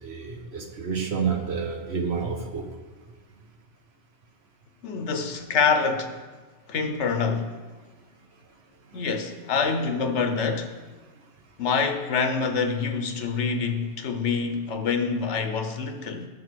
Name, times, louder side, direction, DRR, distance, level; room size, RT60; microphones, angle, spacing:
voice 1, 0.0-2.7, right 6 dB, 65° right, 1.3 m, -29 dB
voice 2, 4.8-6.1 6.7-7.5 8.9-10.7 11.6-16.3, left 5 dB, 80° left, 1.2 m, -26 dB
10.5 x 5.1 x 6.2 m
omnidirectional pair, 1.2 m